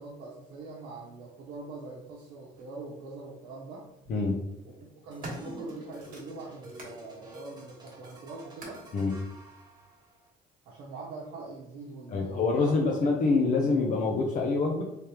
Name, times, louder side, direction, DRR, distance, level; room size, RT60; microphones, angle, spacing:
voice 1, 0.0-3.9 4.6-8.8 10.7-12.8, right 3 dB, 85° right, -3 dB, 0.8 m, -43 dB
sound 1, 2.6-2.7 3.8-4.1 4.7-7.0 7.4-8.9 9.8-9.9, right 2 dB, 55° right, 1.3 m, -46 dB
sound 2, 5.1-10.3, right 1 dB, 25° right, 1.0 m, -50 dB
voice 2, 12.1-14.8, left 3 dB, 50° left, -1 dB, 0.6 m, -26 dB
3.3 x 3.2 x 2.9 m, 0.87 s
cardioid pair, 110°, 17 cm